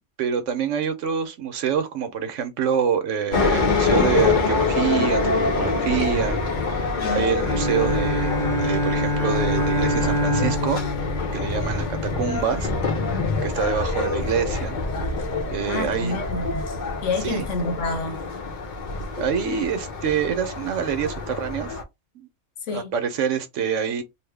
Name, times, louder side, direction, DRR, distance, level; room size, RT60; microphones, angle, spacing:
voice 1, 0.2-10.8 11.3-12.7 13.4-14.8 15.5-16.2 17.2-17.4 19.2-21.8 22.7-24.0, right 7 dB, 85° right, 1.1 m, -26 dB
sound 1, 3.3-21.8, left 3 dB, 50° left, 0.7 m, -26 dB
voice 2, 7.0-7.3 14.2-14.3 15.7-16.7 17.0-18.2 22.7-22.9, left 3 dB, 75° left, 1.2 m, -28 dB
Bowed string instrument, 7.4-12.3, left 1 dB, ahead, 0.9 m, -25 dB
3.1 x 2.1 x 3.3 m
omnidirectional pair, 1.3 m